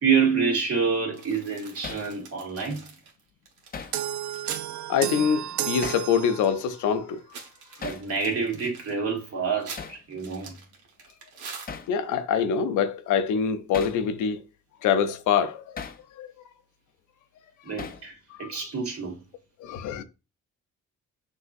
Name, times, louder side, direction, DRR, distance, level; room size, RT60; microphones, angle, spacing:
voice 1, 0.0-2.9 7.8-10.6 17.6-19.2, right 5 dB, 50° right, 1.9 m, -27 dB
sound 1, 1.1-4.7 5.1-5.2 5.4-6.7 7.1-12.1, right 5 dB, 85° right, 1.4 m, -45 dB
Hammer, 1.8-2.1 3.7-4.0 5.8-6.1 7.8-8.1 9.8-10.0 11.7-11.9 13.7-14.0 15.8-16.0 17.8-18.1, left 5 dB, 30° left, 0.6 m, -37 dB
sound 2, 3.9-6.8, right 12 dB, 70° right, 0.4 m, -32 dB
voice 2, 4.9-7.2 11.9-14.4 14.8-15.8 16.2-16.3 18.4-18.5 19.6-20.0, left 7 dB, 80° left, 0.6 m, -25 dB
6.2 x 2.9 x 2.5 m
cardioid pair, 90°, 30 cm